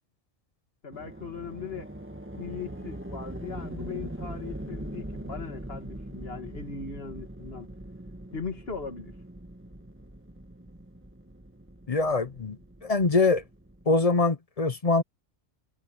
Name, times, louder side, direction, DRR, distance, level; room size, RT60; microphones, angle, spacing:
voice 1, 0.8-1.9 2.4-7.7 8.3-9.1, left 5 dB, 60° left, 2.4 m, -39 dB
sound 1, 0.9-13.9, right 1 dB, 10° right, 1.6 m, -41 dB
voice 2, 11.9-13.4 13.9-15.0, left 3 dB, 35° left, 0.8 m, -24 dB
omnidirectional pair, 1.2 m